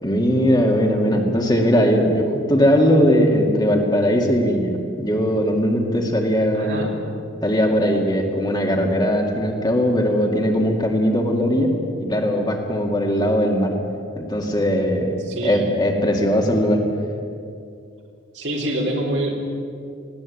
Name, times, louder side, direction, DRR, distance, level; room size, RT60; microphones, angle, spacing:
voice 1, 0.0-6.9 7.4-11.7 12.0-13.7 14.2-15.1 15.4-16.8, equal, 20° left, 1 dB, 2.2 m, -19 dB
voice 2, 6.5-7.0 15.2-15.7 18.3-19.3, right 1 dB, 65° right, -1 dB, 4.0 m, -25 dB
19.5 x 17.0 x 8.6 m, 2.4 s
head